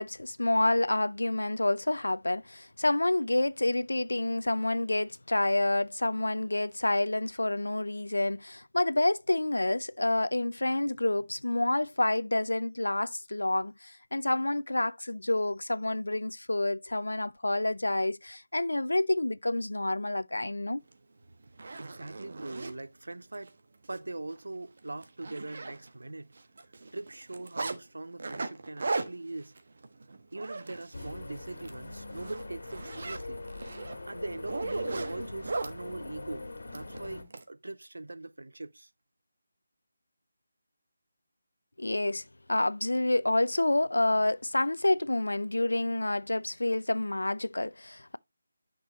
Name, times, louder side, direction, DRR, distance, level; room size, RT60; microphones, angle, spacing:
voice 1, 0.0-20.8 41.8-48.2, left 2 dB, 85° left, 0.5 m, -28 dB
Zipper (clothing), 20.9-21.0 21.4-22.7 23.3-23.5 23.8-24.0 24.3-24.4 24.8-26.1 26.4-27.8 28.2-31.1 31.5-31.7 32.1-35.7 36.7-37.4, right 3 dB, 55° right, 1.3 m, -37 dB
voice 2, 21.8-23.6 23.9-26.3 26.9-29.5 30.3-33.4 34.1-38.9, right 2 dB, 75° right, 0.6 m, -41 dB
sound 1, 30.9-37.2, left 2 dB, 70° left, 1.9 m, -42 dB
9.9 x 6.1 x 3.0 m
figure-of-eight pair, 160°, 0 cm